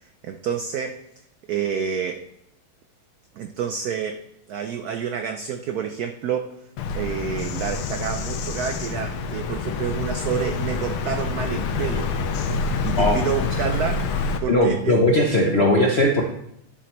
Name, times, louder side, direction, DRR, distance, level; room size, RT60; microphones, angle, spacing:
voice 1, 0.0-1.0 1.5-2.2 3.4-4.2 4.5-6.6 6.9-12.1 12.5-14.1 14.4-15.0 15.3-15.4, right 7 dB, 85° right, 5 dB, 0.8 m, -28 dB
Bird vocalization bird call bird song, 6.8-14.4, left 4 dB, 90° left, 1.7 m, -27 dB
voice 2, 14.5-16.2, left 1 dB, 65° left, 0 dB, 0.6 m, -18 dB
11.0 x 7.4 x 3.1 m, 0.76 s
omnidirectional pair, 2.3 m